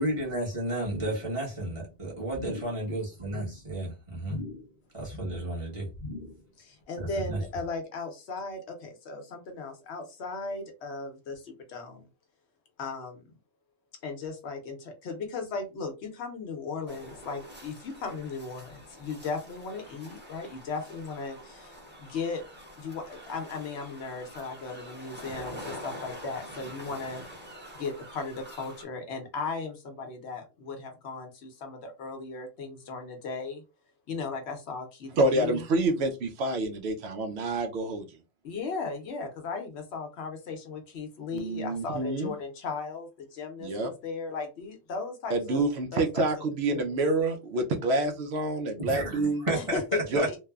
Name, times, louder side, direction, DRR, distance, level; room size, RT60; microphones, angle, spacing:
voice 1, 0.0-4.4 4.9-5.9 7.0-7.4 48.8-49.8 50.1-50.4, right 1 dB, 30° right, 1.1 m, -32 dB
sound 1, 0.8-1.3 1.6-1.9 2.3-2.8 3.2-3.6 4.2-4.8 5.0-5.5 5.9-6.5 6.8-6.9, left 2 dB, 50° left, 0.7 m, -41 dB
voice 2, 6.6-12.1 12.8-13.2 14.0-22.4 22.8-27.2 27.7-33.6 34.1-35.6 38.4-45.7 45.9-46.3 46.7-46.9 49.5-50.4, left 4 dB, 75° left, 0.9 m, -37 dB
sound 2, 16.9-28.8, equal, 10° right, 0.8 m, -46 dB
voice 3, 35.2-38.1 41.3-42.3 43.6-43.9 45.3-49.4 50.1-50.2, right 2 dB, 70° right, 0.8 m, -27 dB
3.1 x 2.0 x 2.3 m
omnidirectional pair, 1.1 m